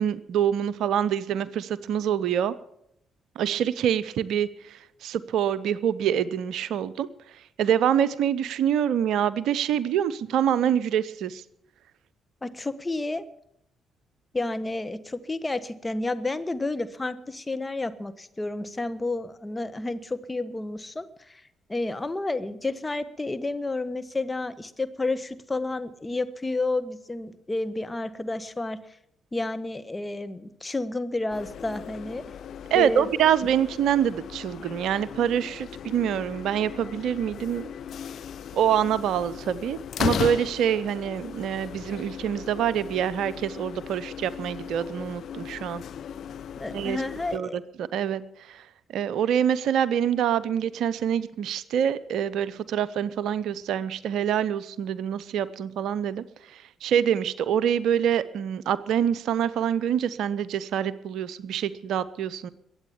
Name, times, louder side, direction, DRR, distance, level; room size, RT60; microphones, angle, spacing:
voice 1, 0.0-2.5 3.4-7.1 7.6-11.4 32.7-37.7 38.5-45.8 46.7-47.0 47.3-47.5 47.8-48.2 48.5-48.6 48.9-56.2 56.8-62.5, right 9 dB, 70° right, 18 dB, 0.6 m, -25 dB
voice 2, 12.4-13.3 14.3-21.4 21.7-28.8 29.3-32.2 32.7-33.1 46.6-47.6, left 2 dB, 20° left, 10 dB, 1.3 m, -30 dB
sound 1, 31.3-47.4, left 8 dB, 65° left, 0.7 m, -37 dB
22.0 x 8.6 x 7.1 m, 0.77 s
hypercardioid pair, 45°, 0 cm